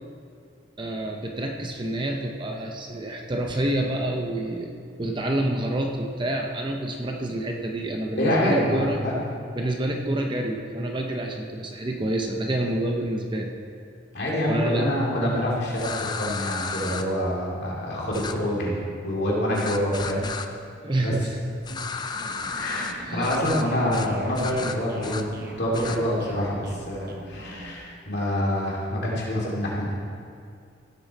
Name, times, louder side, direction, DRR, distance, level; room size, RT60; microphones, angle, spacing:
voice 1, 0.8-4.7 5.0-9.0 9.6-13.5 14.5-14.9 20.8-21.4 23.1-23.4, right 1 dB, 25° right, 2 dB, 0.7 m, -28 dB
voice 2, 8.2-9.1 14.1-18.8 19.0-20.3 21.0-21.1 22.6-25.3 25.6-29.9, equal, 55° left, -5 dB, 2.7 m, -26 dB
sound 1, 15.7-17.0 18.1-18.3 19.6-20.5 21.6-22.9 23.2-23.6 23.9-24.1 24.3-25.2 25.7-26.0, left 5 dB, 20° left, 0.4 m, -33 dB
sound 2, 22.1-27.8, right 1 dB, 50° right, 1.0 m, -42 dB
16.0 x 7.6 x 4.1 m, 2.3 s
head